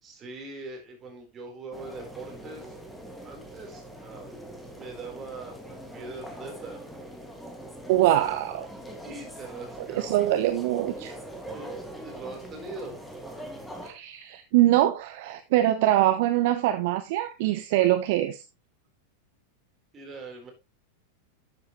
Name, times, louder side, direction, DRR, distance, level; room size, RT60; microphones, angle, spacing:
voice 1, 0.0-2.7 3.2-4.4 4.7-6.8 9.0-10.3 11.5-11.7 12.0-13.0 19.9-20.5, right 3 dB, 25° right, 1 dB, 4.2 m, -42 dB
sound 1, 1.7-13.9, right 1 dB, 5° left, 2.2 m, -42 dB
voice 2, 7.9-8.7 9.9-11.1 13.8-18.4, right 14 dB, 50° right, 9 dB, 0.8 m, -23 dB
12.5 x 7.8 x 3.2 m, 0.27 s
figure-of-eight pair, 90°, 0 cm